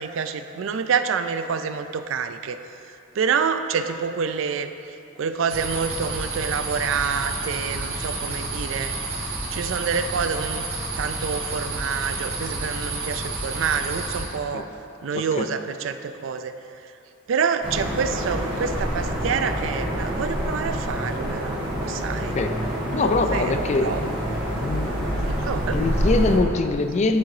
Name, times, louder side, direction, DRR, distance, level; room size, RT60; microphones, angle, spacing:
voice 1, 0.0-2.6 3.2-4.7 5.2-8.9 9.5-10.6 11.0-14.7 15.0-16.5 17.3-21.6 21.9-22.4 23.0-24.0 25.3-25.8, right 6 dB, 65° right, 10 dB, 0.3 m, -27 dB
sound 1, 5.5-14.2, right 3 dB, 85° right, 1.5 m, -30 dB
voice 2, 15.1-15.5 22.3-22.6 22.9-23.9 24.6-24.9 25.7-27.2, left 3 dB, 35° left, 8 dB, 0.3 m, -23 dB
sound 2, 17.6-26.4, equal, 25° right, 1.5 m, -27 dB
9.6 x 3.8 x 4.8 m, 2.8 s
head